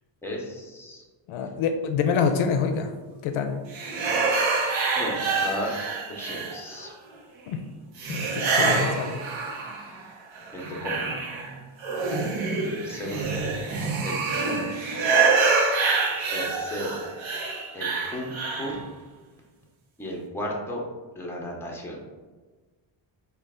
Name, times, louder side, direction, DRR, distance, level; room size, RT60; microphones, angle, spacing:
voice 1, 0.2-1.0 5.0-5.7 6.1-6.9 8.6-8.9 10.5-11.1 12.8-13.4 14.0-14.7 16.3-17.0 17.7-18.8 20.0-20.8 21.2-22.0, equal, 5° left, -2 dB, 0.8 m, -34 dB
voice 2, 1.3-2.9 3.2-3.6 7.5-7.6 8.1-9.2, left 6 dB, 75° left, 6 dB, 0.5 m, -26 dB
sound 1, 3.7-6.9 8.0-10.0 10.4-18.8, right 4 dB, 65° right, 0.9 m, -26 dB
3.8 x 2.4 x 3.5 m, 1.3 s
cardioid pair, 95°, 49 cm